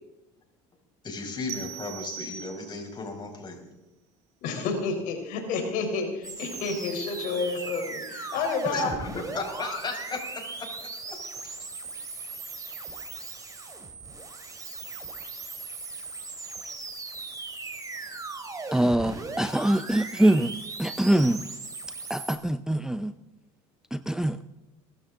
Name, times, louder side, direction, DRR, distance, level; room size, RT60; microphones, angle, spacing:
voice 1, 1.0-3.6 8.6-11.2 11.4-11.7, left 4 dB, 30° left, 1 dB, 5.3 m, -35 dB
sound 1, 1.5-3.0, right 9 dB, 75° right, 1.7 m, -40 dB
voice 2, 4.4-9.2, left 4 dB, 65° left, 3 dB, 4.1 m, -30 dB
sound 2, 6.2-22.4, right 3 dB, 25° right, 2.7 m, -38 dB
voice 3, 18.7-20.5 20.8-21.5 22.1-23.1 23.9-24.4, right 1 dB, 5° right, 11 dB, 0.5 m, -24 dB
22.0 x 12.5 x 3.8 m, 0.96 s
supercardioid pair, 95°, 14 cm